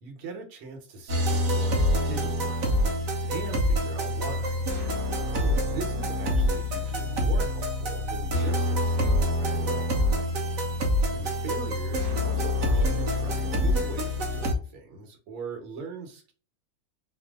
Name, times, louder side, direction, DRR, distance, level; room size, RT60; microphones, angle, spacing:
voice 1, 0.0-2.8 3.3-4.6 5.3-9.9 11.1-16.3, right 4 dB, 80° right, 2 dB, 2.1 m, -40 dB
sound 1, 1.1-14.5, left 1 dB, 50° right, 1.1 m, -26 dB
5.5 x 2.1 x 3.4 m, 0.39 s
omnidirectional pair, 2.4 m